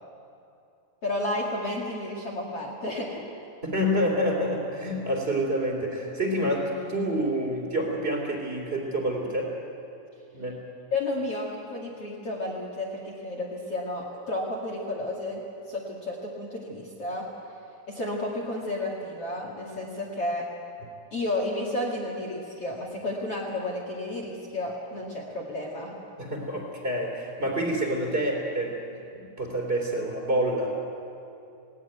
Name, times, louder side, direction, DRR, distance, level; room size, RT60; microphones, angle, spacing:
voice 1, 1.0-3.2 10.9-15.4 15.7-17.3 17.9-20.5 21.1-25.9, left 1 dB, 55° left, -1 dB, 1.7 m, -32 dB
voice 2, 3.6-9.5 10.3-10.6 26.2-28.8 29.1-30.7, equal, 15° right, 1 dB, 2.2 m, -28 dB
19.5 x 18.5 x 9.3 m, 2.6 s
omnidirectional pair, 6.0 m